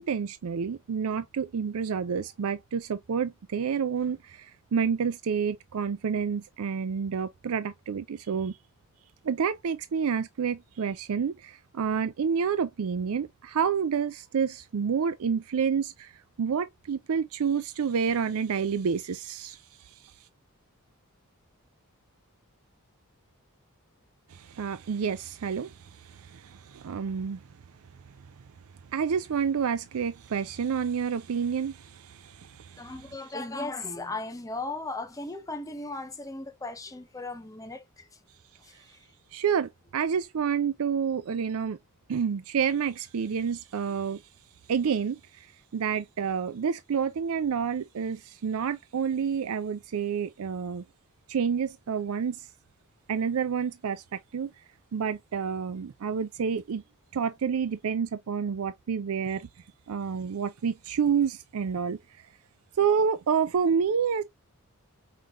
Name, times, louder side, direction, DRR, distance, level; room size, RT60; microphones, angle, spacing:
voice 1, 0.0-8.6 9.2-20.1 24.3-27.4 28.9-33.3 39.3-41.8 42.1-44.2 44.7-45.5 45.7-50.8 51.3-52.5 53.1-54.5 54.9-56.8 57.1-59.5 59.9-62.3 62.8-64.2, right 6 dB, 70° right, 0.4 m, -29 dB
voice 2, 32.8-37.8, left 2 dB, 15° left, 0.8 m, -36 dB
5.6 x 3.3 x 2.4 m
head